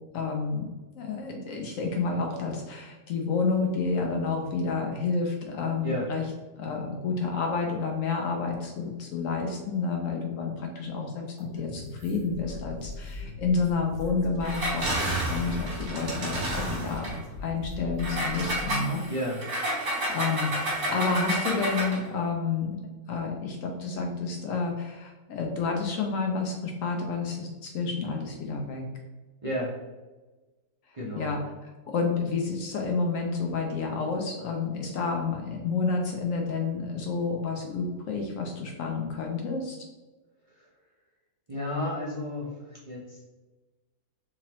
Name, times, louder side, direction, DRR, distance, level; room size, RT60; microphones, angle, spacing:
voice 1, 0.1-0.6 1.0-6.2 6.6-17.1 17.4-19.0 19.8-22.8 23.1-28.8 31.2-39.8, left 4 dB, 70° left, 2 dB, 0.9 m, -30 dB
sound 1, 11.4-18.7, left 2 dB, 55° right, 1.3 m, -40 dB
Engine, 14.4-17.2 18.0-22.1, right 1 dB, 85° right, 1.8 m, -30 dB
voice 2, 19.1-19.4 29.4-29.7 30.9-31.3 40.5-40.7 41.5-43.2, equal, 25° right, -7 dB, 0.8 m, -32 dB
3.7 x 3.0 x 2.9 m, 1.2 s
omnidirectional pair, 1.6 m